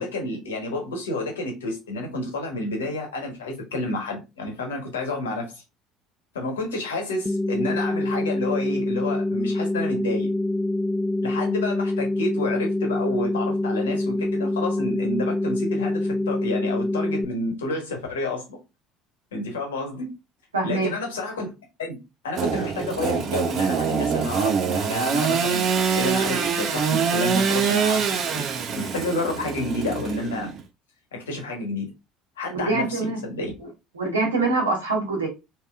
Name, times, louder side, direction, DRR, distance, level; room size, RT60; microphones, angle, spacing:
voice 1, 0.0-5.6 6.3-10.3 11.2-18.6 19.3-20.1 20.6-21.5 21.8-22.0 22.2-25.7 25.9-28.5 28.7-30.5 31.1-31.9 32.4-33.5, left 2 dB, 80° left, 1.0 m, -30 dB
sound 1, 7.3-17.3, left 1 dB, 15° left, 0.3 m, -25 dB
voice 2, 20.5-20.9 32.5-33.2 33.9-35.3, right 3 dB, 85° right, 1.1 m, -24 dB
Engine / Sawing, 22.4-30.6, right 6 dB, 50° right, 0.5 m, -24 dB
3.2 x 2.7 x 2.3 m
figure-of-eight pair, 60°, 0 cm